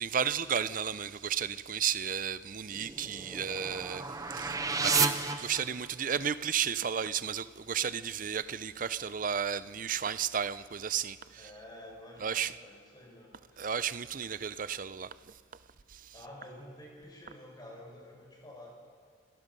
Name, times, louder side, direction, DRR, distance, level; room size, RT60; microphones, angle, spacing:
voice 1, 0.0-11.5 12.2-12.5 13.6-15.3 15.9-16.1, right 8 dB, 45° right, 0.5 m, -33 dB
sound 1, 2.7-6.1, right 4 dB, 20° right, 0.9 m, -32 dB
voice 2, 11.4-13.8 16.1-18.7, left 1 dB, 20° left, 4.9 m, -50 dB
28.5 x 18.5 x 5.4 m
head